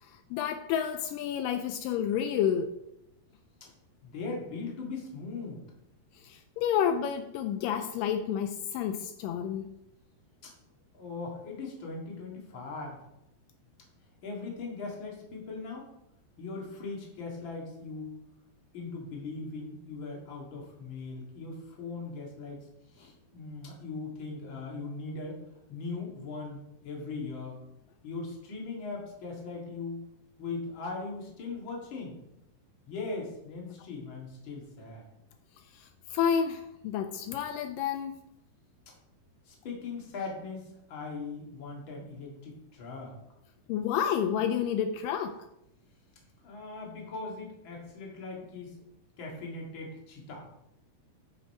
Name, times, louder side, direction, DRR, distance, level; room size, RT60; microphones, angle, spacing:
voice 1, 0.3-2.7 6.2-9.7 35.8-38.1 43.7-45.4, left 8 dB, 90° left, 7 dB, 1.9 m, -30 dB
voice 2, 4.0-5.6 10.4-10.5 10.9-13.0 14.2-15.8 16.4-18.1 18.7-22.6 22.9-25.4 25.7-26.6 26.8-27.6 28.0-30.0 30.4-32.2 32.9-35.0 39.5-43.1 46.4-48.8 49.2-50.5, left 3 dB, 40° left, -1 dB, 2.1 m, -39 dB
10.5 x 5.6 x 4.4 m, 0.84 s
omnidirectional pair, 4.4 m